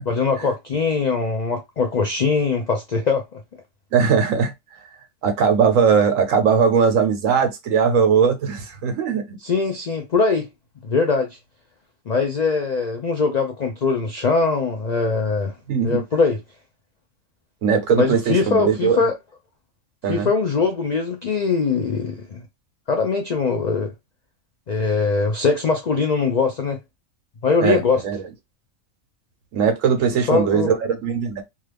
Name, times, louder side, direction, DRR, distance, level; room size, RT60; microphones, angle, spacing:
voice 1, 0.1-3.4 9.4-10.5 10.8-11.4 12.1-15.5 15.8-16.4 18.0-19.1 20.1-22.4 22.9-23.9 24.7-26.8 27.4-28.0 30.3-30.7, left 4 dB, 75° left, 0.4 m, -21 dB
voice 2, 3.9-4.5 5.2-9.4 15.7-16.0 17.6-19.0 20.0-20.3 27.6-28.2 29.5-31.4, right 6 dB, 70° right, 1.2 m, -19 dB
2.8 x 2.4 x 3.3 m
omnidirectional pair, 1.4 m